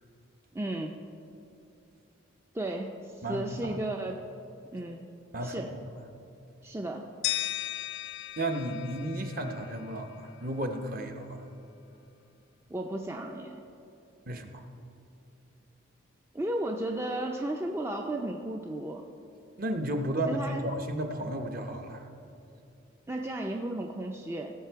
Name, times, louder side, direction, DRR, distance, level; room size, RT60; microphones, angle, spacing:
voice 1, 0.5-1.0 2.5-4.3 4.7-5.1 5.4-5.7 6.6-7.1 12.7-13.6 16.3-19.0 20.3-20.7 23.1-24.5, right 1 dB, 10° right, 2 dB, 0.4 m, -34 dB
voice 2, 3.2-3.8 5.3-5.7 8.4-11.4 14.3-14.7 19.6-22.1, right 1 dB, 45° right, 5 dB, 0.8 m, -33 dB
sound 1, 7.2-10.2, left 13 dB, 60° left, 0.3 m, -36 dB
17.5 x 6.8 x 4.6 m, 2.7 s
head